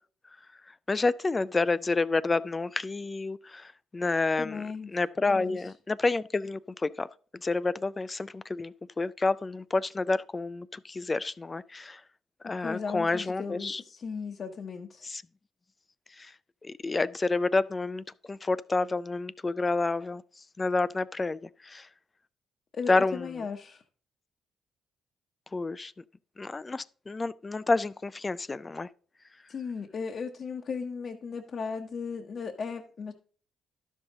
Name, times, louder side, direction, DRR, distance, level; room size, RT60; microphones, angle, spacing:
voice 1, 0.7-4.6 4.9-7.1 7.4-12.0 12.4-13.8 15.0-15.2 16.2-16.3 16.6-20.2 20.6-21.9 22.9-23.3 25.5-25.9 26.4-28.9, left 3 dB, 25° left, 0.3 m, -29 dB
voice 2, 4.4-4.9 5.4-5.6 12.4-15.1 22.7-23.8 29.5-33.1, left 5 dB, 50° left, 0.8 m, -36 dB
12.0 x 5.4 x 3.8 m
cardioid pair, 90°, 0 cm